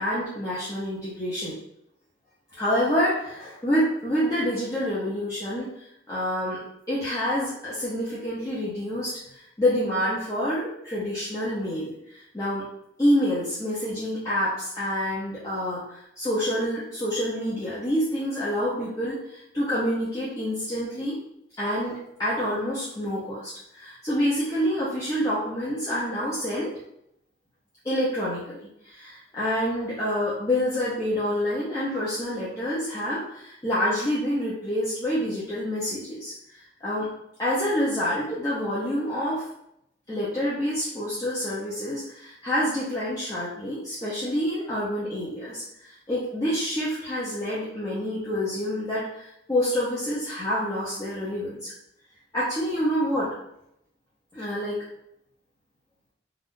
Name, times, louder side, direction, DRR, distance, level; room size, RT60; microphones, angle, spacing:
voice 1, 0.0-1.5 2.5-5.7 6.1-6.6 6.9-9.2 9.6-12.6 13.0-21.2 21.6-26.7 27.8-28.6 28.8-37.1 37.4-39.4 40.1-45.6 46.1-51.7 52.3-53.3 54.3-54.8, equal, 20° left, -10 dB, 0.7 m, -27 dB
2.6 x 2.4 x 3.6 m, 0.77 s
head